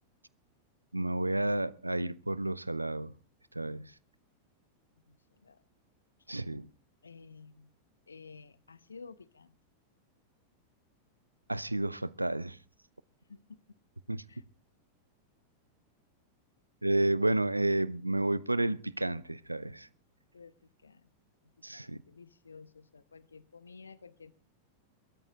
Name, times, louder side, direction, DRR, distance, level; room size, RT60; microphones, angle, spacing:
voice 1, 0.9-3.1 3.5-3.9 6.3-6.7 11.5-12.6 14.1-14.2 16.8-19.9 21.6-22.0, right 2 dB, 85° right, 0.7 m, -31 dB
voice 2, 7.0-7.7 8.1-9.5 13.3-13.6 14.3-14.4 20.3-21.1 21.7-24.3, left 5 dB, 75° left, 0.9 m, -52 dB
22.5 x 13.5 x 3.7 m
figure-of-eight pair, 90°, 0 cm